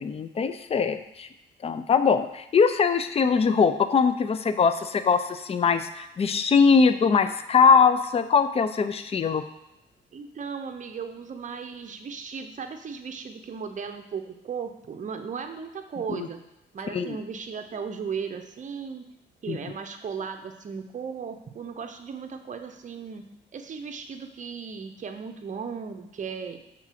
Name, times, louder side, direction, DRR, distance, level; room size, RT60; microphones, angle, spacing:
voice 1, 0.0-1.3 1.6-9.4 16.2-16.3 16.9-17.2 19.5-19.6, left 5 dB, 30° left, 10 dB, 0.5 m, -22 dB
voice 2, 10.1-16.4 16.7-19.1 19.4-23.3 23.5-26.6, right 6 dB, 40° right, 6 dB, 0.7 m, -36 dB
6.0 x 3.8 x 5.8 m, 0.89 s
cardioid pair, 90°, 20 cm